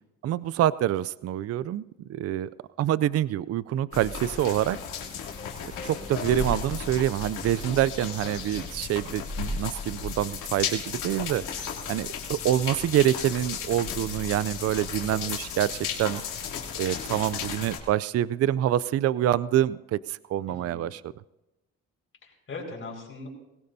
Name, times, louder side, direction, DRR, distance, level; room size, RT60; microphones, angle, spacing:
voice 1, 0.2-1.8 2.1-2.5 2.8-4.8 5.8-16.2 16.8-21.0, right 12 dB, 55° right, 19 dB, 0.4 m, -26 dB
sound 1, 3.9-17.8, left 6 dB, 80° left, 2.8 m, -34 dB
sound 2, 5.0-7.0, left 4 dB, 25° left, 0.9 m, -44 dB
voice 2, 20.5-20.9 22.2-23.3, left 3 dB, 45° left, 0 dB, 5.3 m, -40 dB
20.0 x 17.5 x 2.7 m, 0.95 s
cardioid pair, 90°, 30 cm